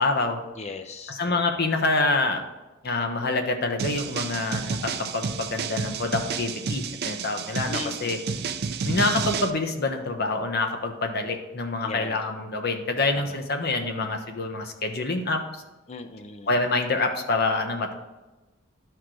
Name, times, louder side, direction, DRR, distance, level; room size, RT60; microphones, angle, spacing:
voice 1, 0.0-0.4 1.1-2.4 2.8-8.2 8.9-15.6 16.5-17.9, left 3 dB, 50° left, 5 dB, 0.9 m, -26 dB
voice 2, 0.6-1.4 7.7-8.5 11.8-12.2 13.1-13.4 15.9-16.6, left 3 dB, 30° left, 8 dB, 0.5 m, -38 dB
sound 1, 3.8-9.5, right 5 dB, 50° right, 0.5 m, -30 dB
11.5 x 4.7 x 3.8 m, 1.1 s
head